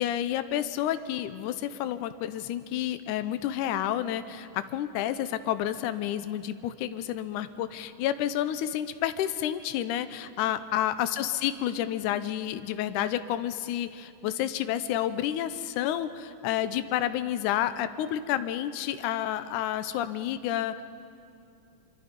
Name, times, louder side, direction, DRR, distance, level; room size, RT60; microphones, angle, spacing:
voice 1, 0.0-20.8, left 11 dB, 80° left, 12 dB, 2.1 m, -30 dB
24.5 x 24.0 x 5.2 m, 2.6 s
omnidirectional pair, 3.9 m